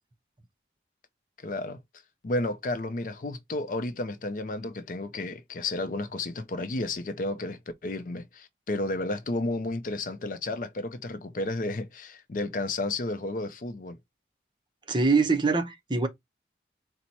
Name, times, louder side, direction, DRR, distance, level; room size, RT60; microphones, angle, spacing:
voice 1, 1.4-1.8 2.2-14.0, left 2 dB, 45° left, 0.5 m, -32 dB
voice 2, 14.9-16.1, right 4 dB, 25° right, 0.7 m, -23 dB
4.4 x 2.1 x 4.1 m
head